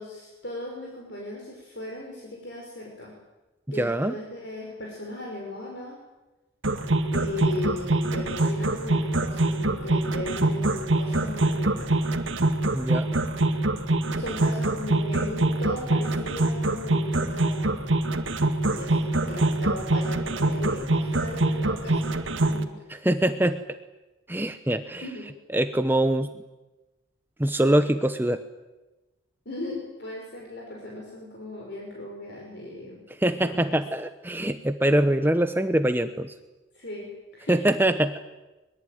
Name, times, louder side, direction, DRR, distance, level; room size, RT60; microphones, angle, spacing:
voice 1, 0.0-3.2 3.7-6.0 7.1-12.0 14.1-17.8 18.6-22.8 25.0-25.3 29.5-33.0 33.5-33.8 36.7-37.6, left 1 dB, 55° left, -1 dB, 5.5 m, -37 dB
voice 2, 3.7-4.1 12.7-13.2 22.9-23.6 24.3-25.1 25.5-26.3 27.4-28.4 33.2-36.3 37.5-38.2, right 1 dB, 10° right, 9 dB, 0.8 m, -24 dB
sound 1, 6.6-22.6, right 2 dB, 70° right, 2.1 m, -24 dB
23.5 x 21.5 x 9.4 m, 1.1 s
head